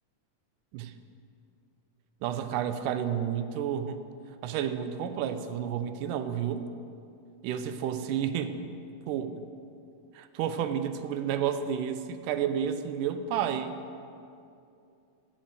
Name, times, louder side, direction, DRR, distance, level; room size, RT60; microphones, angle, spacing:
voice 1, 2.2-4.0 4.4-6.7 7.4-8.6 9.1-9.5 10.1-13.8, right 8 dB, 85° right, 10 dB, 2.2 m, -31 dB
15.5 x 8.6 x 4.6 m, 2.6 s
omnidirectional pair, 3.7 m